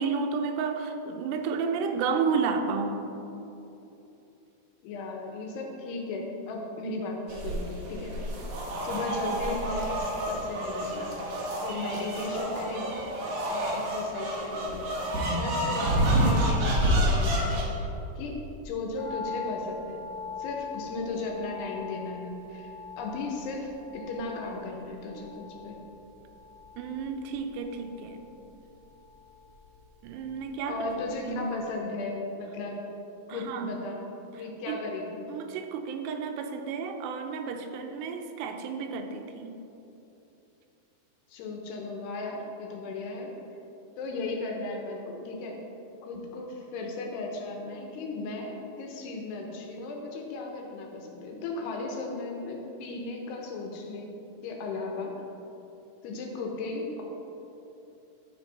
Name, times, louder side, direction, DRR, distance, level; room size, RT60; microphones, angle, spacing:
voice 1, 0.0-3.1 26.8-28.2 30.0-30.8 31.3-31.5 33.3-33.8 34.7-34.8 35.3-39.6, right 5 dB, 85° right, 5 dB, 2.7 m, -31 dB
voice 2, 4.8-8.2 8.8-11.2 11.6-13.0 13.5-17.9 18.2-18.4 18.6-20.1 20.4-22.7 23.0-25.8 30.7-32.8 33.3-34.0 34.4-35.2 41.3-43.3 44.0-45.6 46.0-54.2 54.4-55.1 56.0-57.0, left 3 dB, 85° left, 0 dB, 3.1 m, -36 dB
sound 1, 7.3-17.6, right 1 dB, 60° right, 2.2 m, -28 dB
sound 2, 19.0-31.2 31.5-31.6, left 5 dB, 35° left, 1.4 m, -43 dB
13.5 x 5.2 x 4.2 m, 2.9 s
omnidirectional pair, 4.8 m